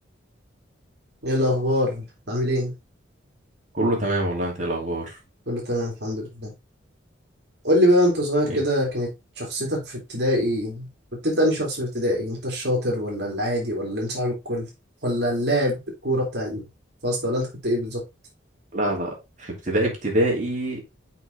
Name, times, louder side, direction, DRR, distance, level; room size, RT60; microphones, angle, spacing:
voice 1, 1.2-2.7 5.5-6.5 7.6-9.1 9.4-10.9 11.2-14.7 15.0-16.6 17.0-18.0, equal, 55° right, -1 dB, 2.7 m, -24 dB
voice 2, 3.7-5.1 8.5-8.6 18.7-20.8, right 1 dB, 40° right, -1 dB, 2.6 m, -25 dB
5.8 x 5.2 x 3.7 m, 0.25 s
head